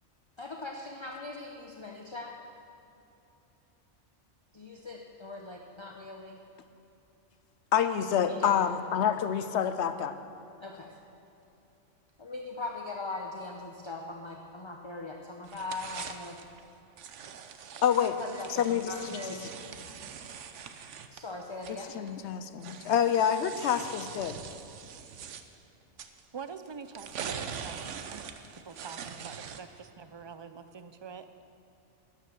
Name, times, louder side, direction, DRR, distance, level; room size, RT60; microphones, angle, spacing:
voice 1, 0.4-2.3 4.5-6.4 8.2-8.6 10.6-11.0 12.2-16.4 18.2-19.5 21.1-21.9 22.4-22.7, left 3 dB, 25° left, 1 dB, 0.8 m, -40 dB
voice 2, 7.7-10.1 17.8-18.2 18.6-18.9 21.9-24.4, left 8 dB, 70° left, 10 dB, 0.9 m, -27 dB
sound 1, 15.4-16.6 17.0-22.1 22.6-25.4 26.0-26.2 26.9-29.8, right 7 dB, 80° right, 1.1 m, -43 dB
voice 3, 26.3-28.2 28.7-31.2, right 6 dB, 45° right, 10 dB, 0.3 m, -45 dB
13.0 x 9.7 x 6.6 m, 2.9 s
omnidirectional pair, 1.2 m